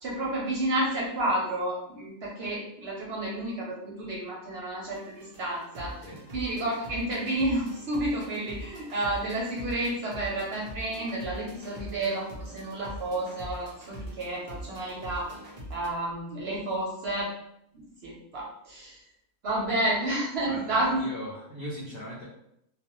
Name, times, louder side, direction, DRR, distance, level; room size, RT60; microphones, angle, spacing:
voice 1, 0.0-5.9 6.3-15.3 15.7-17.3 17.7-19.0 19.4-21.0, right 1 dB, 60° right, -4 dB, 0.7 m, -30 dB
sound 1, 4.9-15.9, equal, 90° right, 0.3 m, -43 dB
voice 2, 20.4-22.2, equal, 75° left, -4 dB, 0.5 m, -39 dB
2.4 x 2.0 x 2.9 m, 0.76 s
omnidirectional pair, 1.5 m